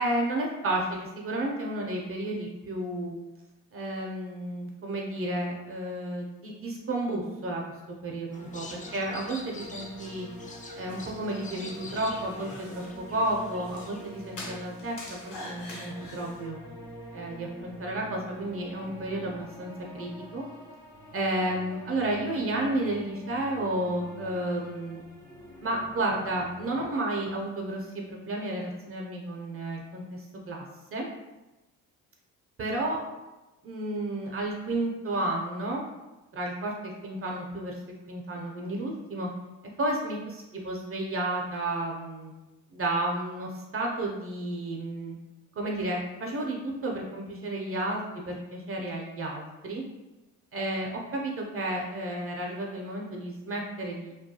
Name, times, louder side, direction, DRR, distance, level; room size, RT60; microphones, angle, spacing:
voice 1, 0.0-3.2 3.7-7.6 7.9-10.3 10.8-16.6 17.1-20.4 21.1-25.0 25.6-30.6 30.9-31.1 32.6-33.0 33.6-35.8 36.3-39.3 39.8-42.3 42.7-45.2 45.6-49.8 50.5-54.1, right 1 dB, 35° right, 0 dB, 0.5 m, -32 dB
sound 1, 8.3-26.9, equal, 75° left, 0.9 m, -46 dB
sound 2, 8.3-14.1, left 2 dB, 20° left, 0.3 m, -46 dB
sound 3, 10.3-16.5, left 1 dB, 50° left, 0.9 m, -46 dB
2.2 x 2.2 x 2.7 m, 1.1 s
supercardioid pair, 70°, 38 cm